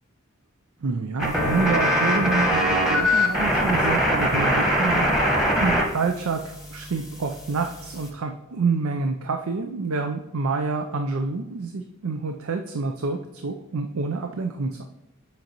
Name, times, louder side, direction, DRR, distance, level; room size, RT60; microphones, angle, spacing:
voice 1, 0.8-5.1 5.3-14.8, right 4 dB, 75° right, 5 dB, 0.5 m, -28 dB
sound 1, 1.2-5.8 6.1-8.1, equal, 5° right, 1.2 m, -22 dB
7.9 x 5.2 x 2.9 m, 0.94 s
head